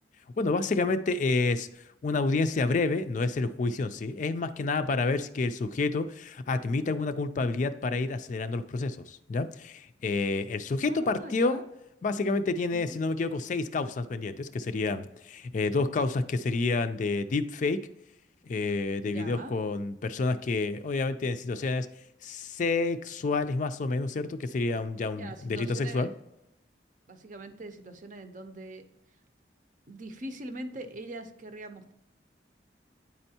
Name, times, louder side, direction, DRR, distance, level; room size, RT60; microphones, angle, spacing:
voice 1, 0.4-1.7 2.0-11.6 12.0-17.8 18.4-21.9 22.2-26.1, left 3 dB, 45° left, 10 dB, 0.4 m, -29 dB
voice 2, 10.8-11.6 12.7-13.0 19.0-19.5 25.2-26.1 27.1-28.8 29.9-31.9, right 1 dB, 45° right, 8 dB, 0.7 m, -42 dB
9.6 x 4.4 x 2.8 m, 0.83 s
head